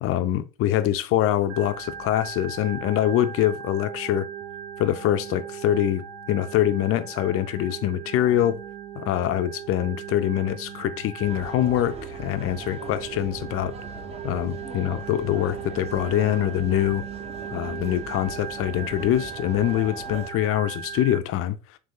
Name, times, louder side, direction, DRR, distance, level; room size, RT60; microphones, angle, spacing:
voice 1, 0.0-4.2 4.8-8.6 9.0-13.7 14.2-17.0 17.5-21.6, left 12 dB, 40° left, 0.6 m, -24 dB
Organ, 1.5-21.2, right 8 dB, 50° right, 0.6 m, -38 dB
sound 1, 11.2-20.3, right 2 dB, 20° right, 0.8 m, -41 dB
3.9 x 2.8 x 3.7 m
hypercardioid pair, 95°, 34 cm